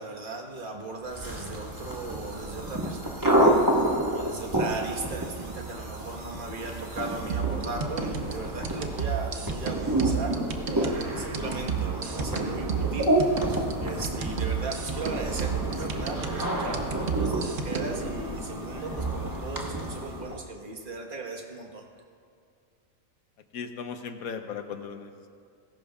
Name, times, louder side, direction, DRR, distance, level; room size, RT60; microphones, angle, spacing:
voice 1, 0.0-21.8, right 2 dB, 40° right, 1 dB, 1.5 m, -37 dB
sound 1, 1.1-20.4, right 1 dB, 15° right, 1.3 m, -29 dB
sound 2, 1.7-7.3, right 2 dB, 90° right, 2.7 m, -50 dB
sound 3, 7.3-18.1, right 6 dB, 65° right, 1.3 m, -32 dB
voice 2, 23.5-25.3, left 6 dB, 80° left, 7 dB, 1.3 m, -37 dB
19.0 x 16.5 x 2.4 m, 2.3 s
omnidirectional pair, 1.5 m